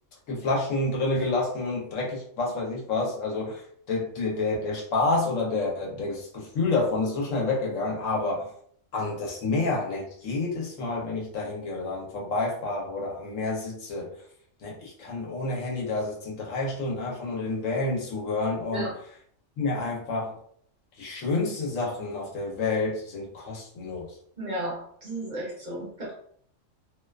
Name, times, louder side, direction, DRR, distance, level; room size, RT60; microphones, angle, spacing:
voice 1, 0.3-8.5 8.9-14.1 14.6-19.1 19.6-20.4 21.0-24.1, left 3 dB, 80° left, -2 dB, 1.1 m, -29 dB
voice 2, 24.4-26.1, right 1 dB, 45° right, -5 dB, 0.7 m, -33 dB
2.6 x 2.2 x 2.3 m, 0.63 s
omnidirectional pair, 1.3 m